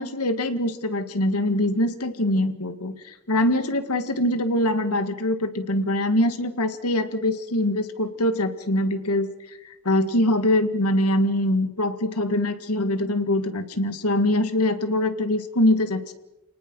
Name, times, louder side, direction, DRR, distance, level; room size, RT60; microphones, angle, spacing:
voice 1, 0.0-3.0 3.3-9.3 9.9-16.1, left 1 dB, 85° left, 9 dB, 1.9 m, -23 dB
29.5 x 19.0 x 6.2 m, 0.94 s
head